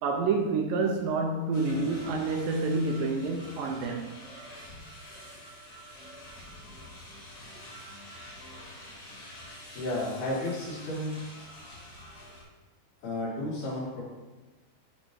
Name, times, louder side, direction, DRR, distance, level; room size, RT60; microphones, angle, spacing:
voice 1, 0.0-4.2, right 3 dB, 75° right, 3 dB, 2.2 m, -28 dB
sound 1, 1.5-12.4, equal, 40° left, 3.3 m, -47 dB
voice 2, 9.7-11.1 13.0-14.0, left 1 dB, 80° left, -6 dB, 4.5 m, -32 dB
11.0 x 4.0 x 4.5 m, 1.2 s
omnidirectional pair, 4.4 m